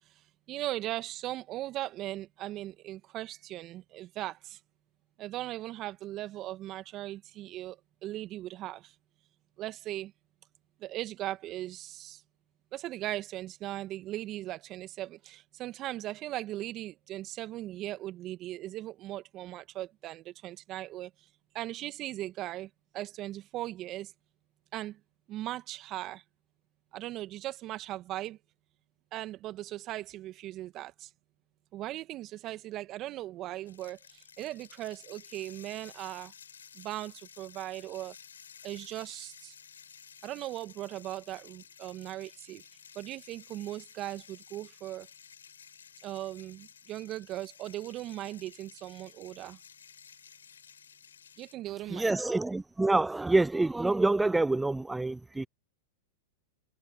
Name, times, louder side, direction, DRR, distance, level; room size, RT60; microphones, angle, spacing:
voice 1, 0.5-4.6 5.2-7.8 8.0-8.9 9.6-10.1 10.8-12.2 12.7-21.1 21.5-24.1 24.7-25.0 25.3-26.2 26.9-28.4 29.1-31.1 31.7-34.0 34.4-36.3 36.8-38.1 38.6-39.5 40.2-42.6 43.0-45.1 46.0-49.6 51.4-52.2, right 15 dB, 40° right, 1.9 m, -38 dB
sound 1, 33.7-51.5, left 7 dB, 85° left, 7.3 m, -54 dB
voice 2, 51.9-55.5, right 2 dB, 10° right, 0.6 m, -27 dB
hypercardioid pair, 105°, 0 cm